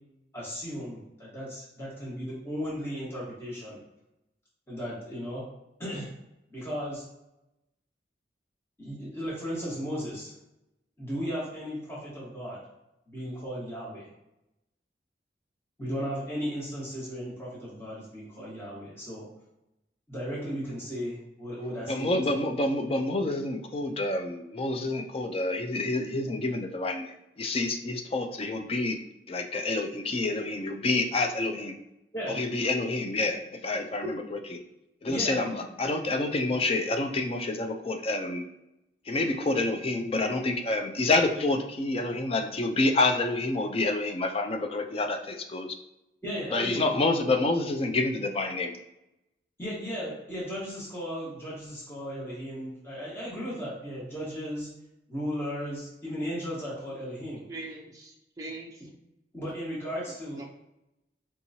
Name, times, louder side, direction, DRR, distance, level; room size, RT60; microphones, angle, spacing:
voice 1, 0.3-3.8 4.7-5.5 5.8-6.1 6.5-7.0 8.8-10.3 11.0-12.6 13.1-14.1 15.8-19.3 20.1-22.2 32.1-32.4 35.1-35.4 46.2-47.0 49.6-54.7 55.1-57.4 59.3-60.5, equal, 15° left, -8 dB, 1.3 m, -35 dB
voice 2, 21.9-29.0 29.3-31.8 32.3-34.6 35.0-38.5 39.1-45.8 46.5-48.8, left 2 dB, 35° left, 5 dB, 0.4 m, -28 dB
voice 3, 57.5-58.8 60.1-60.4, right 2 dB, 20° right, -1 dB, 0.5 m, -42 dB
4.5 x 2.9 x 2.7 m, 0.89 s
head